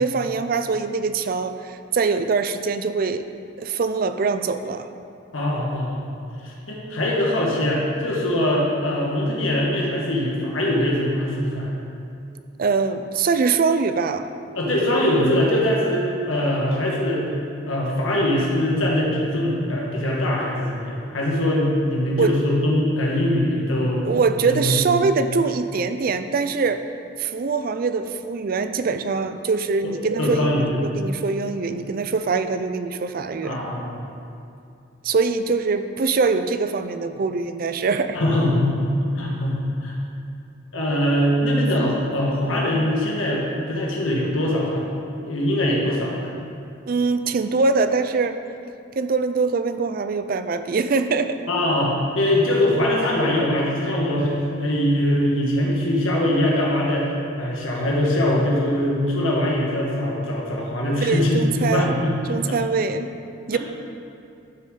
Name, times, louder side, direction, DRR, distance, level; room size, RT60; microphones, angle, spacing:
voice 1, 0.0-3.2 3.6-4.9 12.6-14.3 22.2-22.4 24.0-26.8 27.2-30.5 30.8-33.6 35.0-38.2 46.9-48.4 49.0-51.4 61.0-61.9 62.3-63.1 63.5-63.6, right 4 dB, 45° right, 10 dB, 0.4 m, -23 dB
voice 2, 5.3-6.0 6.4-11.7 14.5-17.2 17.6-24.1 24.5-24.8 29.8-29.9 30.2-30.8 33.4-34.0 38.1-38.8 39.1-40.0 40.7-44.9 45.2-46.3 51.5-62.2 63.5-63.6, left 1 dB, 85° left, -3 dB, 1.4 m, -22 dB
12.0 x 6.2 x 3.8 m, 2.6 s
head